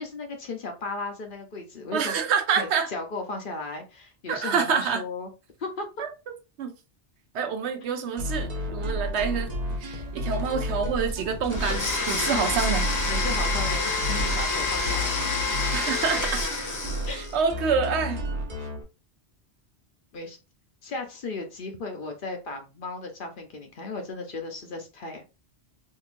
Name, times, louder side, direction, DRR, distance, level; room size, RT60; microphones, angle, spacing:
voice 1, 0.0-2.2 2.6-5.3 5.6-5.9 12.3-12.5 13.1-15.3 17.1-17.2 20.1-20.4 20.8-25.2, left 3 dB, 55° left, 0.8 m, -35 dB
voice 2, 1.9-2.9 4.3-5.0 6.0-6.1 6.6-6.7 7.3-9.5 9.8-12.9 15.7-16.4 17.1-18.2, right 6 dB, 75° right, 0.9 m, -27 dB
sound 1, 8.2-18.8, equal, 40° right, 0.8 m, -32 dB
sound 2, 9.5-15.1, left 5 dB, 90° left, 0.9 m, -40 dB
Domestic sounds home sounds, 11.5-17.3, left 3 dB, 25° left, 0.4 m, -28 dB
3.7 x 2.6 x 2.5 m
omnidirectional pair, 1.2 m